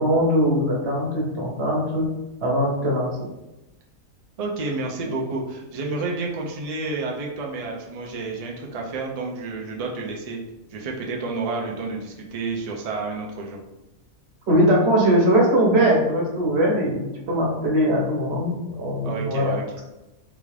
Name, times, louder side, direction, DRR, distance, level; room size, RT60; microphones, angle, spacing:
voice 1, 0.0-2.1 2.4-3.1 14.5-19.5, equal, 50° right, -2 dB, 1.1 m, -21 dB
voice 2, 4.4-10.4 10.7-13.6 19.0-19.6, right 3 dB, 80° right, -1 dB, 0.3 m, -30 dB
4.0 x 2.4 x 3.2 m, 0.97 s
omnidirectional pair, 1.4 m